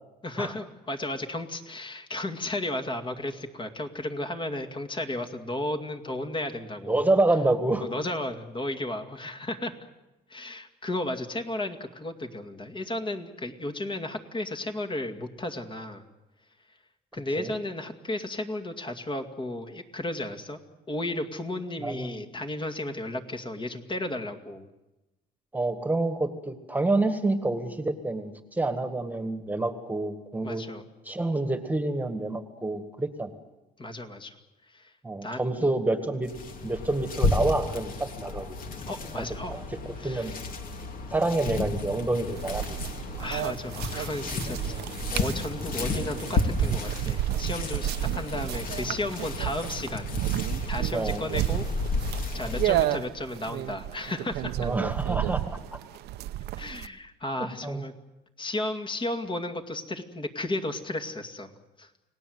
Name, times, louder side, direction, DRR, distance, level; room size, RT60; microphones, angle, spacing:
voice 1, 0.2-7.0 7.8-9.7 10.3-16.0 17.1-20.6 20.9-24.7 30.4-30.9 33.8-34.4 34.7-34.9 35.2-35.4 38.9-39.6 40.0-40.4 43.2-44.8 45.1-50.1 50.7-51.7 52.3-54.7 56.6-57.9 58.4-61.5 61.8-61.9, left 1 dB, 30° left, 5 dB, 2.3 m, -34 dB
voice 2, 6.9-7.8 17.4-17.5 21.8-22.2 25.5-30.6 31.0-33.3 35.0-36.3 36.6-38.6 39.1-39.2 39.5-39.6 40.0-40.3 41.1-42.8 43.2-43.3 50.9-51.3 52.4-52.6 54.6-55.4 57.4-57.8, right 2 dB, 10° right, 8 dB, 1.9 m, -28 dB
sound 1, 36.2-52.9, left 3 dB, 55° left, 3.2 m, -33 dB
sound 2, 42.4-56.9, right 13 dB, 80° right, 0.9 m, -32 dB
30.0 x 18.5 x 8.0 m, 1.0 s
cardioid pair, 110°, 17 cm